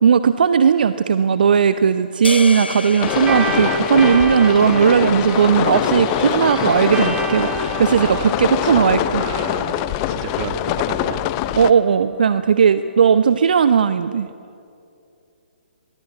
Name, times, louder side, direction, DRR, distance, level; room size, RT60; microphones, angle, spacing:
voice 1, 0.0-9.2 11.5-14.3, right 7 dB, 55° right, 12 dB, 0.8 m, -16 dB
sound 1, 2.2-6.6, left 4 dB, 75° left, 0.7 m, -33 dB
sound 2, 3.0-11.7, left 13 dB, 25° left, 0.8 m, -23 dB
sound 3, 3.1-11.9, right 3 dB, 15° right, 2.7 m, -29 dB
voice 2, 7.9-8.3 8.6-8.8 9.2-11.3, right 9 dB, 30° right, 9 dB, 1.8 m, -32 dB
24.5 x 20.5 x 8.3 m, 2.5 s
figure-of-eight pair, 130°, 6 cm